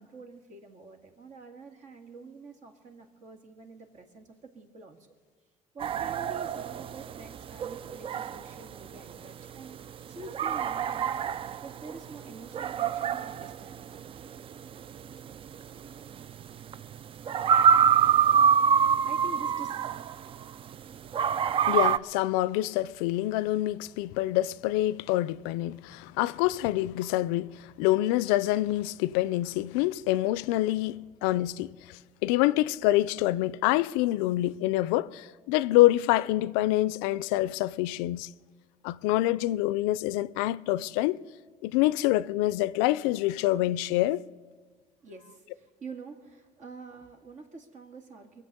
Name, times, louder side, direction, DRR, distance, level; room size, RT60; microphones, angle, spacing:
voice 1, 0.0-5.0 5.7-9.7 10.1-11.1 11.4-14.4 19.0-19.8 45.0-48.4, right 3 dB, 55° right, 2.0 m, -47 dB
sound 1, 5.8-20.7 21.1-22.0, right 7 dB, 40° right, 0.4 m, -26 dB
voice 2, 21.7-38.3 38.8-41.2 41.6-44.2, left 16 dB, 90° left, 0.4 m, -26 dB
22.0 x 7.6 x 6.6 m
supercardioid pair, 85°, 15 cm